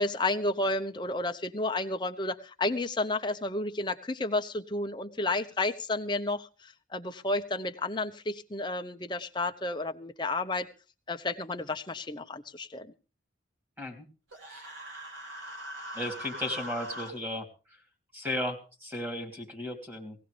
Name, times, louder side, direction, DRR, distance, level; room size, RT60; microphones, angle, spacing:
voice 1, 0.0-10.7 11.1-12.9, left 2 dB, 25° left, 7 dB, 0.9 m, -31 dB
Human voice, 14.3-17.1, equal, 90° right, 4.1 m, -41 dB
voice 2, 15.9-17.5 18.1-20.2, left 1 dB, 10° right, 4 dB, 3.0 m, -35 dB
18.5 x 16.5 x 3.4 m, 0.35 s
head